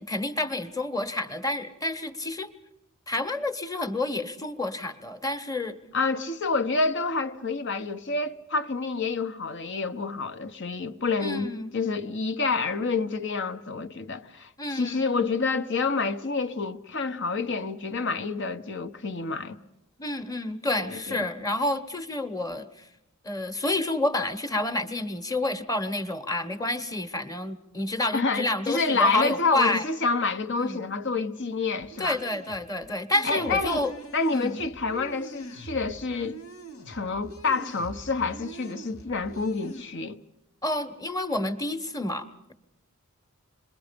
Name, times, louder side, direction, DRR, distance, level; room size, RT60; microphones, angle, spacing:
voice 1, 0.1-2.5 3.1-5.8 11.2-11.8 14.6-15.1 20.0-22.7 23.2-29.8 30.6-30.8 32.0-33.9 34.3-34.6 40.6-42.5, left 2 dB, 15° left, 1.3 m, -29 dB
voice 2, 5.9-19.6 20.7-21.3 28.1-32.2 33.2-33.8 34.1-36.4 36.9-40.2, left 4 dB, 55° left, 1.1 m, -28 dB
sound 1, 31.8-39.8, right 2 dB, 90° left, 2.6 m, -44 dB
27.5 x 22.5 x 5.2 m
head